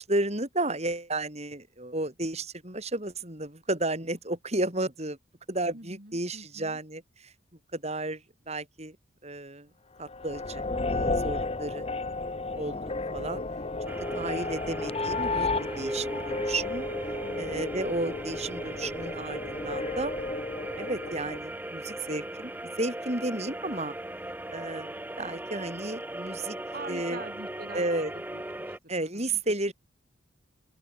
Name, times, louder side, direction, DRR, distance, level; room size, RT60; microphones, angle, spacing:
voice 1, 0.0-5.2 5.5-7.3 7.7-9.0 9.2-9.7 10.0-10.6 10.9-11.9 12.5-12.8 13.1-13.4 14.1-16.9 17.4-20.1 20.8-22.5 22.8-23.9 24.5-26.6 26.9-27.2 27.7-28.1 28.9-29.7, right 2 dB, 35° right, 6.7 m, -32 dB
voice 2, 5.7-6.8 17.2-17.6 26.7-28.0 28.3-29.4, right 2 dB, 50° right, 4.3 m, -45 dB
sound 1, 10.0-21.4, left 3 dB, 30° left, 0.8 m, -33 dB
sound 2, 13.9-28.8, right 1 dB, 10° right, 1.0 m, -38 dB
open air
head